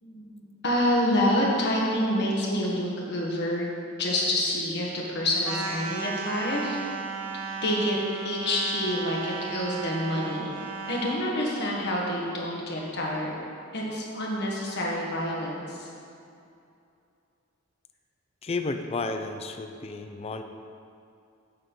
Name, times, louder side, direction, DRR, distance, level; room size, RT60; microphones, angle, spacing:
voice 1, 0.0-3.6 4.0-6.8 7.6-8.0 8.2-10.5 10.9-13.4 13.7-15.9, left 1 dB, 55° left, -3 dB, 1.5 m, -27 dB
sound 1, 5.4-11.2, right 4 dB, 80° right, 0.8 m, -35 dB
voice 2, 18.4-20.4, left 3 dB, 30° left, 7 dB, 0.4 m, -32 dB
7.4 x 4.2 x 6.8 m, 2.6 s
head